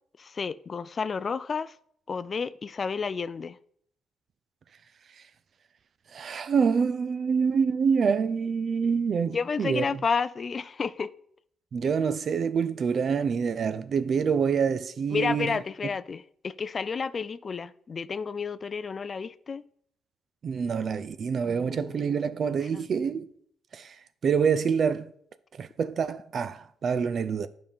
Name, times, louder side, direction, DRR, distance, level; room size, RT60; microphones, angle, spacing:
voice 1, 0.2-1.7 2.1-3.6 9.3-11.1 15.1-19.6 21.4-22.1 22.7-22.8, left 5 dB, 40° left, 0.3 m, -31 dB
voice 2, 6.1-9.8 11.7-15.9 20.4-23.3 23.7-23.9 24.2-25.1 25.6-27.5, right 6 dB, 50° right, 0.5 m, -26 dB
9.3 x 5.2 x 3.7 m
cardioid pair, 90°, 0 cm